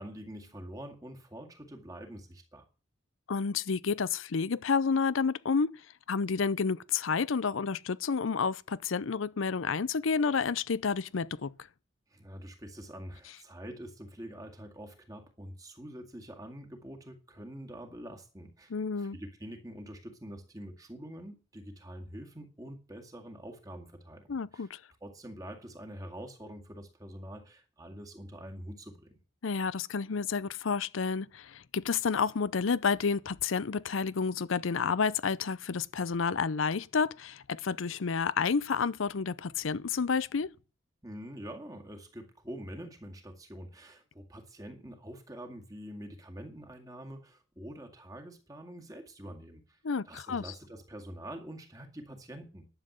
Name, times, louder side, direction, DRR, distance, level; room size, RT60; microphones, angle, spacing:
voice 1, 0.0-2.7 12.1-24.7 25.0-29.2 41.0-49.8 50.1-52.7, equal, 20° right, 2.0 m, -45 dB
voice 2, 3.3-5.7 6.1-11.5 18.7-19.2 24.3-24.8 29.4-40.5 49.8-50.4, left 5 dB, 80° left, 0.6 m, -30 dB
11.5 x 7.6 x 7.8 m
head